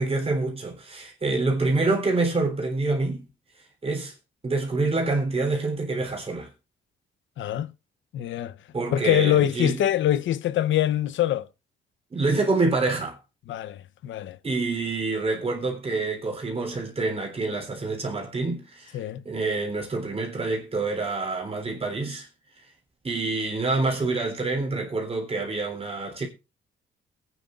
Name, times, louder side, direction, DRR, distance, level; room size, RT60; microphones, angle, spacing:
voice 1, 0.0-3.2 3.6-4.1 4.4-6.5 8.7-9.8 12.1-13.2 14.4-22.3 22.6-22.7 23.0-26.3, right 3 dB, 30° right, 3.6 m, -27 dB
voice 2, 7.4-7.7 8.1-8.5 8.9-11.5 13.5-14.4 18.9-19.2, left 11 dB, 75° left, 0.8 m, -24 dB
22.5 x 9.5 x 2.5 m
cardioid pair, 90°, 20 cm